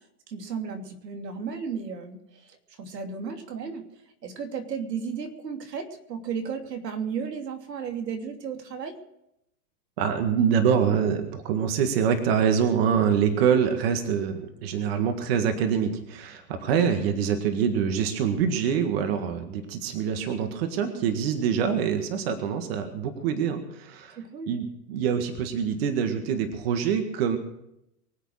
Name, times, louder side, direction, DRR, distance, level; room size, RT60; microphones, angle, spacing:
voice 1, 0.3-2.2 2.8-3.8 4.2-8.9 24.2-24.5, right 6 dB, 85° right, 4 dB, 3.1 m, -34 dB
voice 2, 10.0-24.2 24.5-27.4, right 7 dB, 40° right, 6 dB, 1.9 m, -25 dB
23.5 x 8.2 x 6.4 m, 0.82 s
hypercardioid pair, 165°, 48 cm